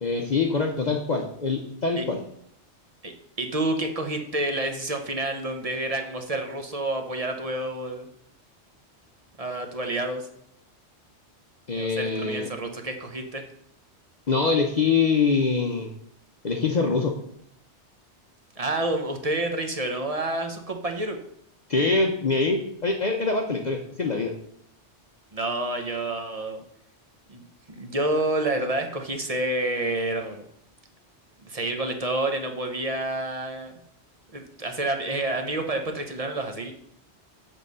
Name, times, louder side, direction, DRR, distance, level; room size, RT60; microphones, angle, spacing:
voice 1, 0.0-2.2 11.7-12.5 14.3-15.9 16.4-17.1 21.7-24.3, left 4 dB, 45° left, 2 dB, 0.8 m, -24 dB
voice 2, 3.4-8.1 9.4-10.3 11.8-13.4 18.6-21.2 25.3-26.6 27.3-27.4 27.7-30.4 31.4-33.8 34.3-36.7, right 2 dB, 35° right, 5 dB, 1.0 m, -29 dB
8.0 x 3.7 x 6.6 m, 0.70 s
omnidirectional pair, 1.2 m